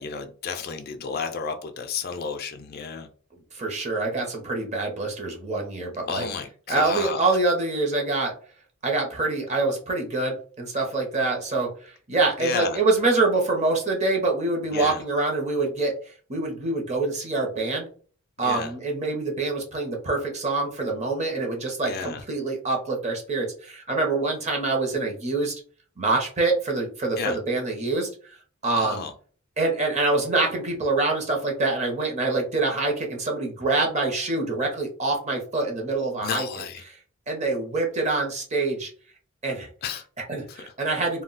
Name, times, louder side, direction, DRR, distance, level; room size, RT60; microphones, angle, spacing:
voice 1, 0.0-3.1 6.1-7.2 12.4-12.8 14.7-15.0 18.4-18.7 21.9-22.2 27.2-27.4 28.7-29.1 36.2-36.8 39.8-40.0 40.5-40.6, left 6 dB, 45° left, 0.3 m, -32 dB
voice 2, 3.5-6.3 6.7-8.3 8.8-15.9 16.3-17.9 18.4-25.5 26.0-28.1 28.6-29.1 29.6-36.5 37.3-38.9 39.4-39.7 40.2-41.2, right 3 dB, 30° right, 0.6 m, -25 dB
2.3 x 2.1 x 3.8 m
head